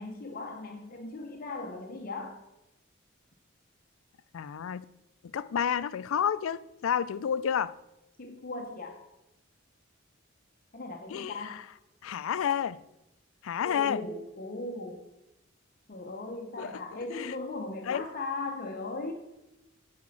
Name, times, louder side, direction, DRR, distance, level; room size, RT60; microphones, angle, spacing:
voice 1, 0.0-2.4 8.2-9.0 10.7-11.6 13.6-15.0 15.9-19.1, left 2 dB, 45° left, 0.7 m, -38 dB
voice 2, 4.3-4.8 5.3-7.7 11.1-11.6 12.0-12.8 13.4-14.1 16.6-16.7 17.1-17.3 17.9-18.0, left 8 dB, 75° left, 0.4 m, -30 dB
9.8 x 4.2 x 6.2 m
head